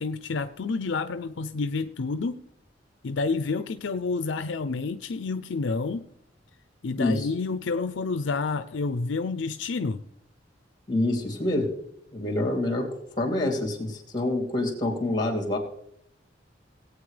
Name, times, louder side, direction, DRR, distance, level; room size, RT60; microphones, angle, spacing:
voice 1, 0.0-2.4 3.0-6.0 6.8-10.0, left 4 dB, 70° left, 11 dB, 0.5 m, -29 dB
voice 2, 7.0-7.3 10.9-11.7 12.1-12.9 13.2-15.6, left 2 dB, 25° left, 2 dB, 2.9 m, -26 dB
18.5 x 8.6 x 3.3 m, 0.72 s
head